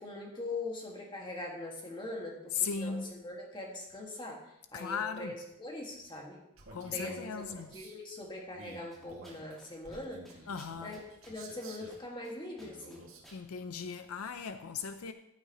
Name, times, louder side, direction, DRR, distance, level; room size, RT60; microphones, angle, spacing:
voice 1, 0.0-6.4 6.9-10.4 10.8-13.0, left 2 dB, 20° left, 1.8 m, -42 dB
voice 2, 2.6-3.1 4.7-5.3 6.7-7.7 10.5-10.9 13.3-15.1, left 6 dB, 90° left, 0.5 m, -37 dB
Male speech man speaking, 6.6-8.0 8.5-12.0 12.6-13.3, right 2 dB, 75° right, 2.1 m, -52 dB
sound 1, 8.9-9.7 9.9-10.0 10.2-11.6 11.9-12.3 12.6-13.4, right 1 dB, ahead, 2.2 m, -57 dB
15.0 x 8.2 x 3.0 m
head